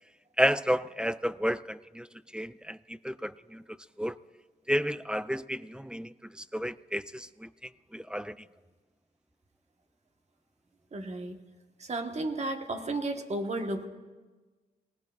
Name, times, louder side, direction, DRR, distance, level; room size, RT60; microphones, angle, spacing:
voice 1, 0.4-2.1 2.3-4.2 4.7-8.5, equal, 5° right, 16 dB, 0.3 m, -32 dB
voice 2, 10.9-11.4 11.8-13.9, right 2 dB, 40° right, 4 dB, 1.4 m, -33 dB
19.0 x 19.0 x 2.5 m, 1.3 s
cardioid pair, 75°, 17 cm